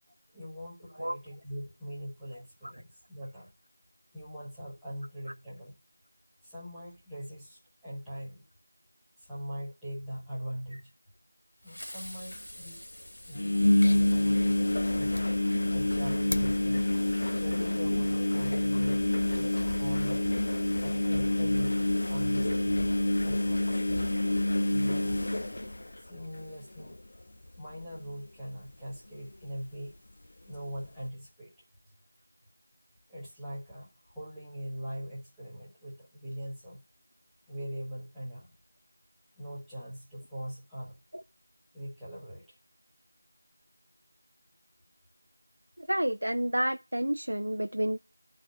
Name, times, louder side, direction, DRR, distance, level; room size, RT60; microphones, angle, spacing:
voice 1, 0.3-3.5 4.1-5.8 6.4-8.4 9.2-10.9 11.6-12.8 13.2-14.6 14.9-16.9 17.4-19.1 19.3-20.3 20.8-22.8 23.2-23.8 24.7-25.4 26.0-27.0 27.6-30.0 30.5-31.5 33.1-36.8 37.5-38.6 39.4-41.0 41.7-42.6, equal, ahead, 0.8 m, -41 dB
Fireworks, 11.6-15.5, left 1 dB, 50° left, 2.0 m, -46 dB
sound 1, 12.1-12.2 12.3-12.4 13.3-26.4 26.8-27.2 27.5-27.6 29.4-29.5, left 1 dB, 35° left, 0.3 m, -27 dB
voice 2, 45.8-48.0, right 1 dB, 75° right, 0.5 m, -29 dB
11.0 x 3.8 x 6.2 m
figure-of-eight pair, 175°, 0 cm